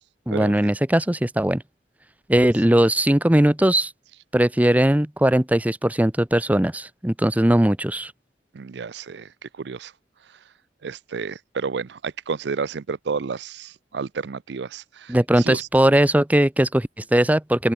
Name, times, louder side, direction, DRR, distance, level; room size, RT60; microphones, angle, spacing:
voice 1, 0.3-1.6 2.3-3.9 4.3-8.1 15.1-17.7, right 1 dB, 10° right, 0.7 m, -19 dB
voice 2, 8.5-9.3 9.6-9.9 10.8-15.7, right 5 dB, 70° right, 0.5 m, -31 dB
open air
head